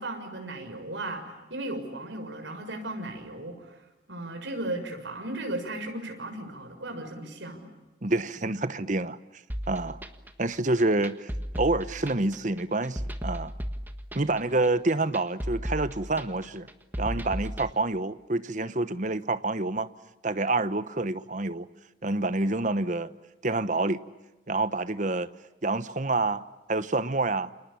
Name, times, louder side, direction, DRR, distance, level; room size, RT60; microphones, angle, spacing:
voice 1, 0.0-3.8 4.1-7.6, right 1 dB, 80° right, 6.6 m, -36 dB
voice 2, 8.0-9.2 9.7-10.0 10.4-13.5 14.1-16.7 17.0-19.9 20.2-21.7 22.0-23.1 23.4-24.0 24.5-25.3 25.6-26.4 26.7-27.5, right 2 dB, 40° right, 1.1 m, -27 dB
sound 1, 9.5-17.7, equal, 10° right, 1.5 m, -35 dB
29.5 x 28.0 x 7.2 m
head